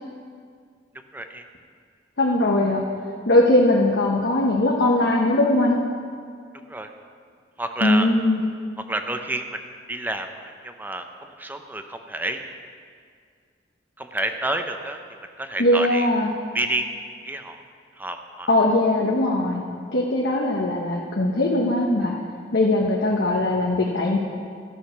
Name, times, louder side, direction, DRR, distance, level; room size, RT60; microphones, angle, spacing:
voice 1, 1.1-1.4 6.7-6.9 7.6-8.1 8.9-9.6 9.9-12.5 14.0-15.0 15.4-16.1 16.5-16.9 17.2-17.6 18.0-18.5, right 2 dB, 10° right, 6 dB, 0.6 m, -29 dB
voice 2, 2.2-2.8 3.3-5.8 7.8-8.4 15.6-16.3 18.5-19.6 19.9-22.1 22.5-24.2, left 1 dB, 85° left, -3 dB, 1.0 m, -20 dB
13.0 x 6.3 x 5.9 m, 2.1 s
head